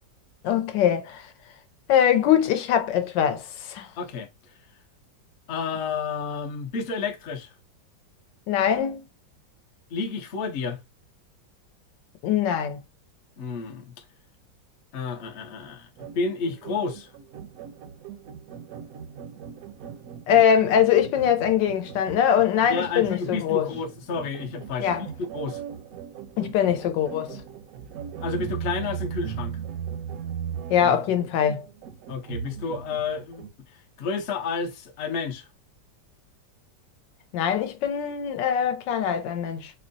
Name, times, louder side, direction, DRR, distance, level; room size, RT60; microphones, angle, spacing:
voice 1, 0.4-1.3 1.9-3.9 8.5-9.0 12.2-12.8 20.3-23.7 24.8-25.0 26.4-27.4 30.7-31.7 37.3-39.7, left 9 dB, 90° left, 1.3 m, -22 dB
voice 2, 4.0-4.3 5.5-7.5 9.9-10.8 13.4-13.9 14.9-15.9 16.1-17.1 22.7-24.9 25.3-25.6 28.2-29.6 32.1-33.5 34.0-35.4, left 4 dB, 60° left, 0.7 m, -30 dB
sound 1, 16.0-33.5, right 8 dB, 70° right, 0.8 m, -38 dB
4.4 x 2.1 x 2.5 m
omnidirectional pair, 1.9 m